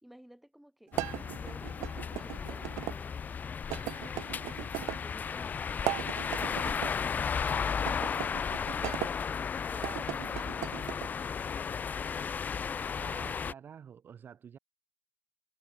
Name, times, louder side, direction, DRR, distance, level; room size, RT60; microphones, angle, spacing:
voice 1, 0.0-0.9 1.3-4.3 5.0-13.4, equal, ahead, 3.0 m, -56 dB
sound 1, 0.9-13.5, left 6 dB, 30° left, 0.9 m, -34 dB
sound 2, 0.9-3.0 3.7-5.0 5.7-6.9 7.8-9.1 9.7-11.1, right 20 dB, 75° right, 0.3 m, -38 dB
voice 2, 12.9-14.6, right 8 dB, 35° right, 2.3 m, -49 dB
cardioid pair, 130°, 6 cm